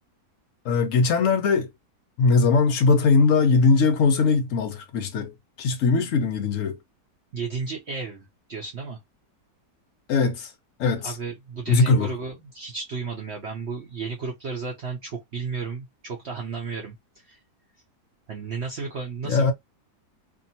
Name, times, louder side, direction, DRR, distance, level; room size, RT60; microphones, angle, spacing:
voice 1, 0.6-1.7 2.2-5.3 5.6-6.8 10.1-10.5 10.8-11.2 11.7-12.1 19.2-19.5, left 4 dB, 70° left, 0.8 m, -20 dB
voice 2, 7.3-9.0 11.0-16.9 17.2-17.4 18.3-19.5, right 4 dB, 55° right, 0.7 m, -33 dB
2.7 x 2.5 x 2.7 m
omnidirectional pair, 1.8 m